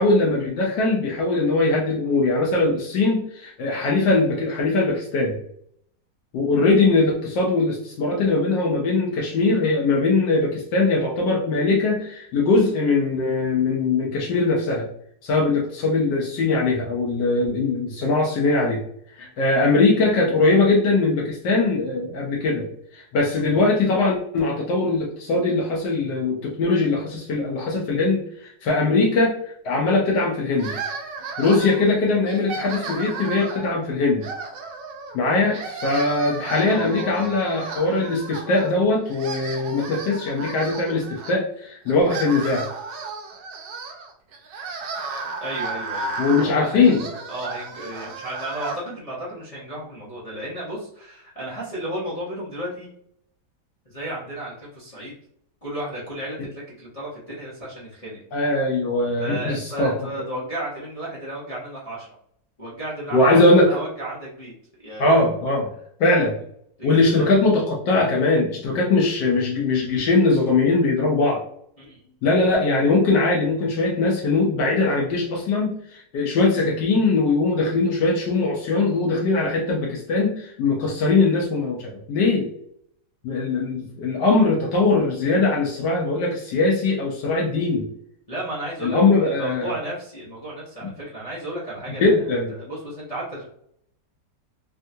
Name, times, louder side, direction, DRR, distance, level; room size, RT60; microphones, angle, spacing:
voice 1, 0.0-5.4 6.3-14.9 15.2-18.8 19.2-22.7 22.9-29.4 29.6-30.7 31.4-34.3 35.1-42.7 46.2-47.0 58.3-59.9 63.1-63.7 65.0-65.7 66.0-66.4 66.8-71.4 72.2-82.5 83.2-87.9 88.8-89.7 90.8-90.9 92.0-92.5, left 3 dB, 75° left, -2 dB, 1.2 m, -21 dB
sound 1, 30.6-31.9 32.3-33.7 34.2-35.2 35.5-38.7 39.0-41.3 41.9-48.8, right 4 dB, 85° right, 1.3 m, -34 dB
voice 2, 36.6-37.3 45.4-46.9 47.3-52.9 53.8-55.1 55.6-58.2 59.2-62.1 62.6-64.5 64.8-65.2 66.8-67.3 71.8-72.1 88.3-93.5, right 1 dB, 30° left, -9 dB, 0.6 m, -33 dB
3.5 x 2.3 x 2.6 m, 0.68 s
omnidirectional pair, 1.9 m